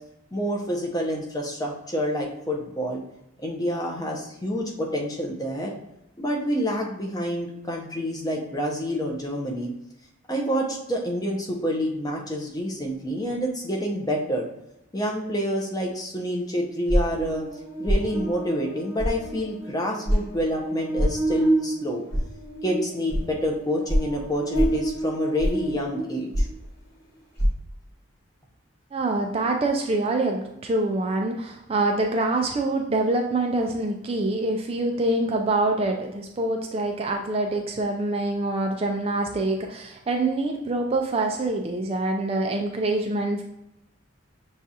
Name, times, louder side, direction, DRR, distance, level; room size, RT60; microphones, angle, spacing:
voice 1, 0.3-3.0 3.4-5.7 6.2-9.7 10.3-14.5 14.9-17.4 17.8-22.0 22.6-26.5, equal, 20° left, -1 dB, 0.6 m, -28 dB
sound 1, 16.9-17.2 17.9-18.1 19.0-19.2 20.1-20.2 21.0-21.2 22.1-22.2 23.1-23.2 23.9-24.1 24.5-24.8 25.4-25.7 26.3-26.6 27.4-27.5, equal, 50° left, 1.2 m, -22 dB
Buzz, 17.1-26.6, right 2 dB, 80° left, 1.3 m, -31 dB
voice 2, 28.9-43.4, right 2 dB, 30° right, 3 dB, 0.3 m, -25 dB
6.4 x 2.3 x 2.7 m, 0.85 s
head